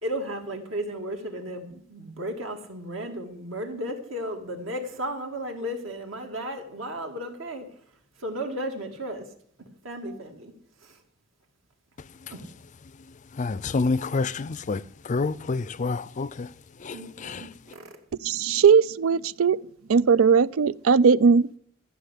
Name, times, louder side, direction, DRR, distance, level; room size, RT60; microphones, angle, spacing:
voice 1, 0.0-7.7 8.2-9.3 9.8-10.5 10.8-11.0 12.3-12.4 16.9-17.9, equal, 70° right, 2.4 m, -34 dB
voice 2, 13.4-16.5 16.8-17.0 17.2-17.4, left 3 dB, 35° left, 0.4 m, -28 dB
voice 3, 18.2-19.6 19.9-21.6, right 6 dB, 90° right, 0.4 m, -19 dB
14.0 x 6.2 x 10.0 m
head